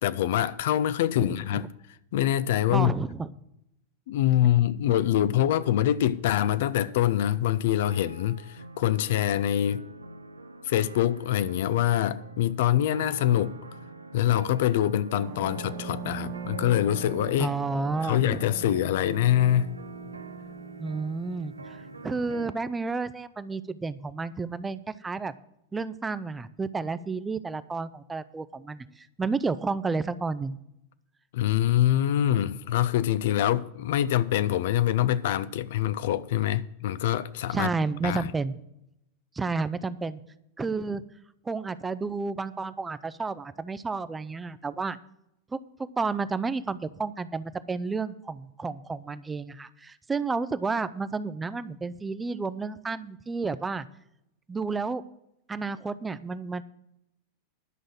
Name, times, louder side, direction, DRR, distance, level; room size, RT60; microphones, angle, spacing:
voice 1, 0.0-1.7 2.1-2.9 4.1-9.8 10.6-13.6 14.1-17.5 18.0-19.8 31.3-37.7 38.0-38.3, left 12 dB, 55° left, 0.5 m, -25 dB
voice 2, 2.7-3.3 17.4-18.4 20.8-21.8 22.0-25.3 25.7-30.6 37.5-38.6 39.4-40.2 40.6-41.0 41.5-45.0 45.5-45.6 46.0-53.9 54.5-55.0 55.5-56.6, right 4 dB, 15° right, 0.5 m, -31 dB
sound 1, 7.8-22.6, right 2 dB, 80° right, 0.7 m, -44 dB
sound 2, 15.2-22.3, right 6 dB, 35° right, 1.1 m, -41 dB
11.0 x 6.2 x 7.4 m
figure-of-eight pair, 90°, 0 cm